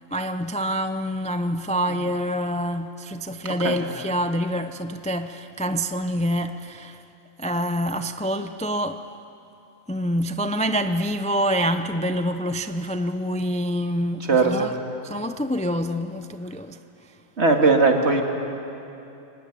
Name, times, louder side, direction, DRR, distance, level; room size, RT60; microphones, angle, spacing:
voice 1, 0.1-7.0 7.4-9.1 9.9-14.7 15.0-16.8, equal, 10° left, 0.3 m, -26 dB
voice 2, 14.3-14.7 17.4-18.2, right 3 dB, 55° right, 2.3 m, -18 dB
24.5 x 19.0 x 9.5 m
omnidirectional pair, 1.4 m